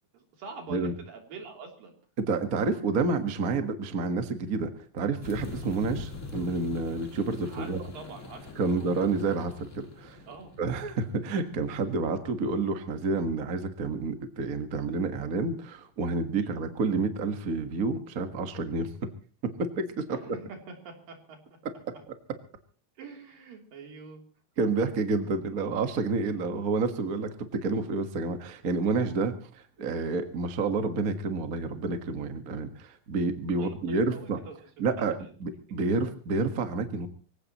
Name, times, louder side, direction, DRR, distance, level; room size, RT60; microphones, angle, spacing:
voice 1, 0.1-1.9 7.5-8.8 10.3-10.5 16.4-16.5 20.1-21.6 23.0-24.2 33.6-34.9 35.2-35.3 35.9-36.0, right 4 dB, 80° right, 2 dB, 5.0 m, -45 dB
voice 2, 2.3-7.8 8.5-10.2 10.6-18.9 19.4-19.5 19.8-20.2 24.6-34.4 34.8-37.1, right 4 dB, 45° right, 7 dB, 1.1 m, -29 dB
sound 1, 5.2-11.8, left 3 dB, 25° left, 2.6 m, -43 dB
24.5 x 16.5 x 3.0 m, 0.39 s
omnidirectional pair, 3.9 m